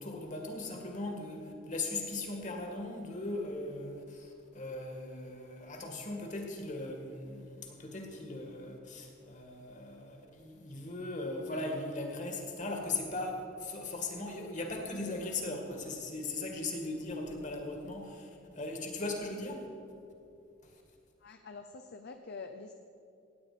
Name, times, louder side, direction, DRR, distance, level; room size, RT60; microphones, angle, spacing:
voice 1, 0.0-19.7 20.6-20.7, left 2 dB, 40° left, 2 dB, 1.8 m, -39 dB
voice 2, 21.2-22.8, left 4 dB, 55° left, 6 dB, 0.6 m, -46 dB
16.5 x 9.0 x 5.0 m, 2.6 s
head